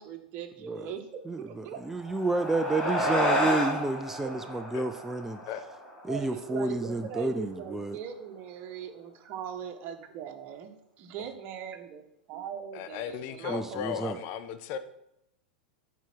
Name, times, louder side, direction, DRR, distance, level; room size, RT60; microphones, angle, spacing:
voice 1, 0.0-1.8 4.2-4.3 6.1-10.7 11.0-14.2, right 8 dB, 40° right, 6 dB, 1.3 m, -40 dB
voice 2, 1.8-5.4 6.1-8.0 13.5-14.2, right 2 dB, 5° right, 8 dB, 0.5 m, -30 dB
sound 1, 1.9-6.7, equal, 15° left, 2.6 m, -30 dB
voice 3, 12.7-14.8, left 9 dB, 45° left, 11 dB, 0.9 m, -36 dB
8.1 x 4.7 x 6.2 m, 0.80 s
figure-of-eight pair, 95°, 5 cm